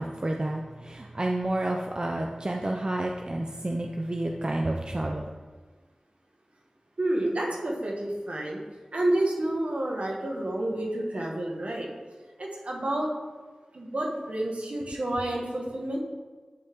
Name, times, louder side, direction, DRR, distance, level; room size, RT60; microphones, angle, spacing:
voice 1, 0.0-5.3, right 1 dB, 40° right, 1 dB, 0.6 m, -30 dB
voice 2, 7.0-8.6 8.9-11.9 12.4-13.1 13.7-16.0, right 1 dB, 65° right, -1 dB, 1.6 m, -29 dB
10.5 x 4.4 x 3.6 m, 1.4 s
wide cardioid pair, 45°, 2 cm